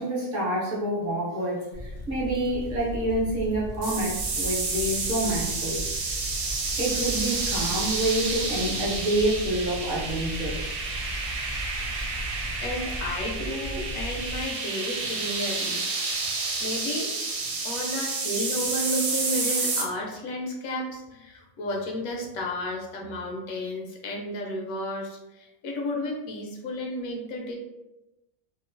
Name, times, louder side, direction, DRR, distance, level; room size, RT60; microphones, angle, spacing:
voice 1, 0.0-5.8 6.8-10.7, right 1 dB, 50° right, -5 dB, 0.8 m, -28 dB
sound 1, 1.7-14.4, equal, 55° left, 0.6 m, -37 dB
sound 2, 3.8-19.8, right 3 dB, 80° right, 1.0 m, -30 dB
voice 2, 11.5-15.9 16.2-17.1 17.6-27.6, left 1 dB, 80° left, 0 dB, 1.0 m, -33 dB
2.9 x 2.1 x 2.5 m, 0.97 s
omnidirectional pair, 1.5 m